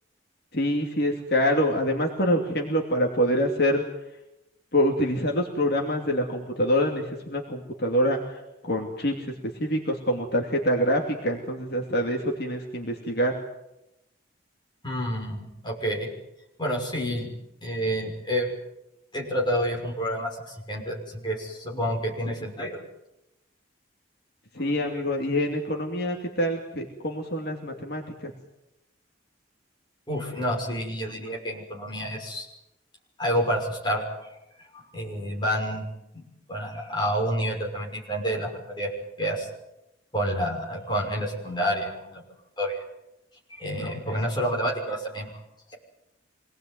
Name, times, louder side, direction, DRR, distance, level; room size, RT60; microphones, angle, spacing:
voice 1, 0.5-3.8 4.7-13.3 24.5-28.3, equal, 50° left, 1 dB, 2.8 m, -26 dB
voice 2, 14.8-16.1 16.6-17.3 17.6-18.5 19.1-22.8 24.6-25.0 30.1-32.5 33.2-34.0 34.7-35.9 36.1-36.2 36.5-38.9 39.2-39.5 40.1-42.2 42.6-42.8 43.5-45.3, equal, 20° left, -1 dB, 6.2 m, -29 dB
26.0 x 19.0 x 9.5 m, 0.91 s
head